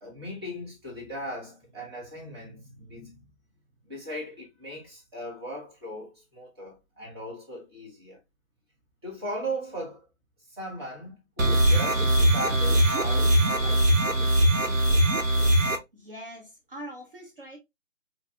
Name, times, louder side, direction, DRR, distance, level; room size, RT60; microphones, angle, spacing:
voice 1, 0.0-3.2 3.9-8.2 9.0-10.1 10.5-14.1, right 1 dB, 20° right, 1.1 m, -38 dB
sound 1, 11.4-15.8, right 1 dB, 70° right, 1.0 m, -21 dB
voice 2, 15.9-17.6, equal, 45° right, 0.9 m, -42 dB
4.8 x 2.3 x 2.3 m
figure-of-eight pair, 160°, 40 cm